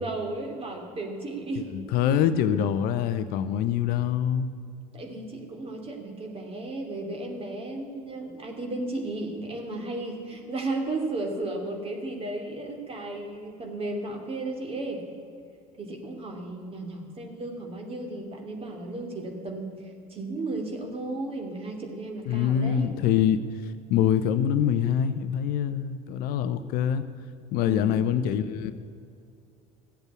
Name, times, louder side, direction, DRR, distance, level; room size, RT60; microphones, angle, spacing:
voice 1, 0.0-1.7 4.9-15.0 15.8-19.7 20.1-23.0 27.6-28.0, right 2 dB, 30° right, 2 dB, 2.8 m, -34 dB
voice 2, 1.7-4.5 22.3-27.0 27.5-28.7, left 9 dB, 55° left, 12 dB, 0.7 m, -25 dB
14.0 x 8.0 x 8.3 m, 2.4 s
figure-of-eight pair, 65°, 18 cm